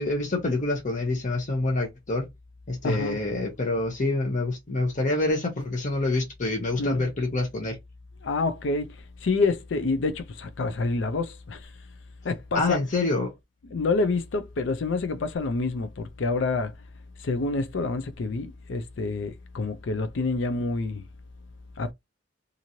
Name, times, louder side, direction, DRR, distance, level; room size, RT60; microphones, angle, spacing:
voice 1, 0.0-2.2 2.7-7.8 12.5-13.3, left 2 dB, 40° left, 0.8 m, -26 dB
voice 2, 2.8-3.2 6.8-7.1 8.2-8.9 9.2-11.7 12.2-12.8 13.7-16.7 17.2-21.0 21.8-21.9, left 3 dB, 70° left, 0.5 m, -27 dB
3.0 x 2.5 x 2.7 m
head